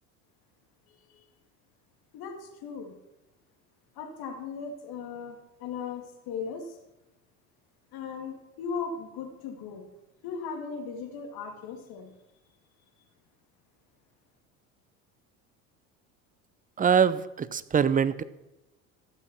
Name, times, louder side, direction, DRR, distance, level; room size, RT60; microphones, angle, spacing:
voice 1, 0.9-1.2 2.1-3.0 4.0-6.8 7.9-9.9 10.2-12.1, left 5 dB, 60° left, 4 dB, 2.5 m, -38 dB
voice 2, 16.8-18.2, right 7 dB, 20° right, 17 dB, 0.6 m, -23 dB
14.0 x 6.4 x 6.0 m, 0.99 s
hypercardioid pair, 70°, 43 cm